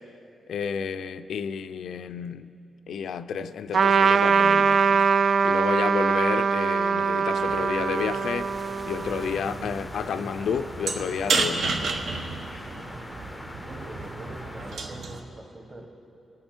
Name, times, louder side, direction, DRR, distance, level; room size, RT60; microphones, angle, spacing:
voice 1, 0.5-2.5 2.9-8.5 8.9-11.9, left 7 dB, 80° left, 0.4 m, -31 dB
Trumpet, 3.7-9.6, right 5 dB, 50° right, 0.3 m, -22 dB
sound 1, 7.4-14.8, left 1 dB, 10° left, 0.5 m, -42 dB
sound 2, 9.2-15.2, right 3 dB, 70° right, 1.3 m, -31 dB
voice 2, 13.6-15.9, right 1 dB, 25° right, 1.5 m, -43 dB
26.5 x 8.8 x 4.4 m
wide cardioid pair, 160°, 0 cm